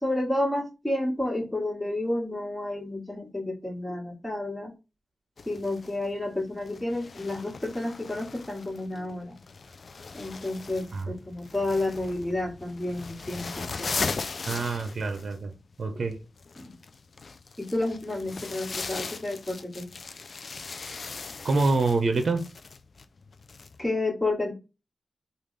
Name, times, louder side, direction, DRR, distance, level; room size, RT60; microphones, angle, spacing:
voice 1, 0.0-4.7 5.4-9.4 10.1-13.9 16.6-16.7 17.6-19.9 23.8-24.5, left 2 dB, 10° left, 1.6 m, -30 dB
sound 1, 5.4-23.9, left 4 dB, 60° left, 0.3 m, -39 dB
voice 2, 14.4-16.2 21.4-22.5, right 3 dB, 60° right, 0.6 m, -26 dB
3.4 x 2.4 x 3.2 m
cardioid pair, 60°, 0 cm